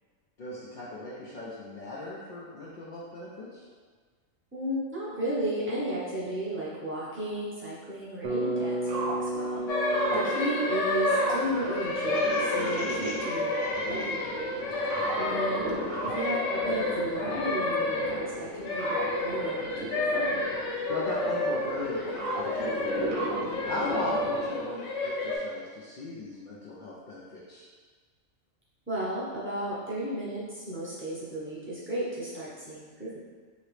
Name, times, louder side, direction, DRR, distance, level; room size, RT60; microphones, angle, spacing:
voice 1, 0.4-3.7 10.0-10.3 14.8-15.4 20.9-27.7, left 2 dB, 90° left, -6 dB, 0.4 m, -38 dB
voice 2, 4.5-9.6 10.1-14.5 15.2-15.7 16.0-20.4 23.9-24.0 28.9-33.2, right 1 dB, 15° right, -9 dB, 0.5 m, -34 dB
Bass guitar, 8.2-12.4, right 1 dB, 90° right, 0.4 m, -34 dB
sound 1, 8.3-24.5, right 2 dB, 70° right, 1.0 m, -37 dB
sound 2, 9.7-25.4, left 2 dB, 70° left, 0.8 m, -30 dB
2.9 x 2.8 x 3.1 m, 1.5 s
omnidirectional pair, 1.4 m